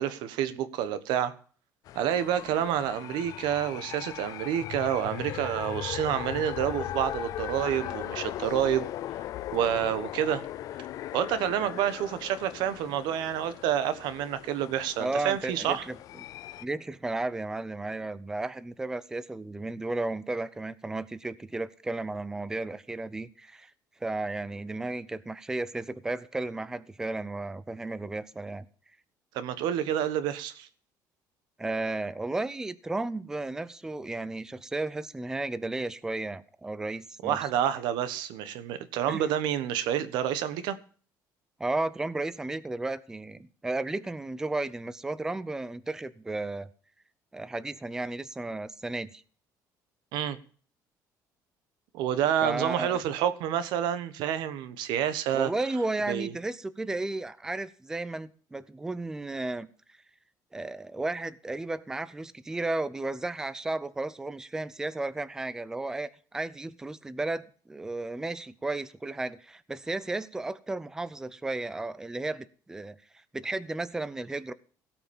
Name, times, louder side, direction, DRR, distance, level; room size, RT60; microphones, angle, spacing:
voice 1, 0.0-1.3 1.9-8.9 9.5-10.4 11.1-15.8 29.3-30.7 37.2-40.8 50.1-50.4 51.9-55.5 56.1-56.3, right 10 dB, 85° right, 1.3 m, -28 dB
sound 1, 1.9-16.7, left 13 dB, 55° left, 0.5 m, -39 dB
voice 2, 15.0-16.0 16.6-23.7 24.0-28.6 31.6-37.5 39.1-39.2 41.6-46.7 47.3-49.2 52.4-53.0 55.3-59.7 60.5-67.4 67.7-74.5, right 2 dB, 10° right, 0.5 m, -34 dB
17.0 x 6.0 x 7.1 m
cardioid pair, 165°, 7 cm